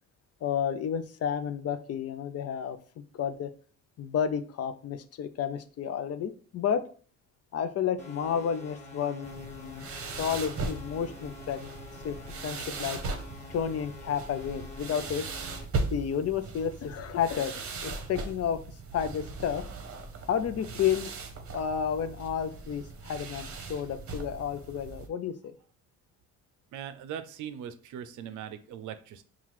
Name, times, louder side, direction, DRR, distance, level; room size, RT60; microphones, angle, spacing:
voice 1, 0.4-2.8 3.1-3.5 4.0-6.8 7.5-9.9 10.2-11.7 12.0-12.2 12.4-13.0 13.5-15.3 15.9-18.6 18.9-19.6 20.3-21.1 21.5-25.3, left 8 dB, 55° left, 10 dB, 0.5 m, -31 dB
sound 1, 8.0-15.6, left 2 dB, 25° left, 1.1 m, -47 dB
sound 2, 9.2-25.1, right 3 dB, 50° right, 0.8 m, -39 dB
voice 2, 26.7-29.2, right 9 dB, 75° right, 10 dB, 0.5 m, -40 dB
5.6 x 2.4 x 3.1 m, 0.42 s
cardioid pair, 90°, 30 cm